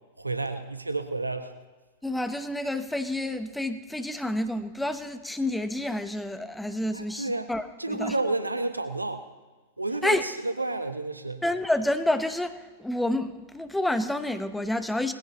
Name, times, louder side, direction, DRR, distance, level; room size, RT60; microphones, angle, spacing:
voice 1, 0.2-1.5 6.9-7.5 7.8-9.2 9.8-11.4, right 2 dB, 90° right, 8 dB, 1.0 m, -30 dB
voice 2, 2.0-8.1 10.0-10.2 11.4-15.1, left 1 dB, 5° left, 9 dB, 1.0 m, -29 dB
20.0 x 15.5 x 3.0 m, 1.3 s
figure-of-eight pair, 95°, 0 cm